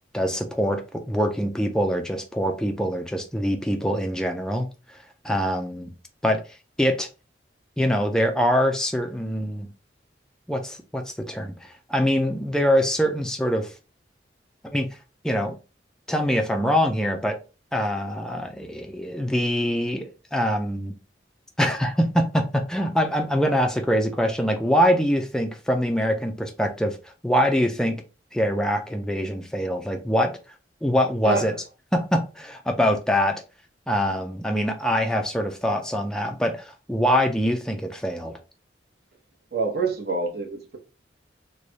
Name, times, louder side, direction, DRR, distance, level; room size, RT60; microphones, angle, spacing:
voice 1, 0.1-4.7 5.2-5.9 6.2-6.4 6.8-7.1 7.8-9.7 10.5-13.7 14.7-14.9 15.2-15.5 16.1-17.4 17.7-20.9 21.6-27.0 27.2-28.0 28.3-30.3 30.8-31.5 31.9-33.4 33.9-38.3, equal, 5° left, 0.4 m, -24 dB
voice 2, 31.2-31.6 39.5-40.8, right 3 dB, 60° right, 1.0 m, -26 dB
3.2 x 2.2 x 3.9 m
head